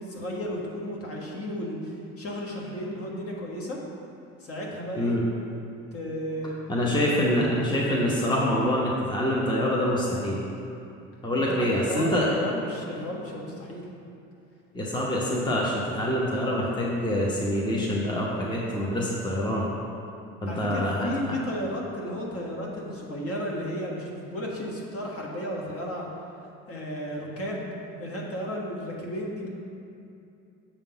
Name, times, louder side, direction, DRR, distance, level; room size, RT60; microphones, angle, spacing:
voice 1, 0.0-3.8 4.4-5.2 5.9-6.5 7.1-7.8 11.5-13.9 20.5-26.1 26.7-27.7 28.0-29.5, equal, 40° left, -2 dB, 1.5 m, -34 dB
voice 2, 6.7-10.4 11.2-12.4 14.7-19.7 20.4-21.1, equal, 10° left, -4 dB, 1.1 m, -25 dB
7.1 x 3.7 x 5.8 m, 2.7 s
hypercardioid pair, 70°, 36 cm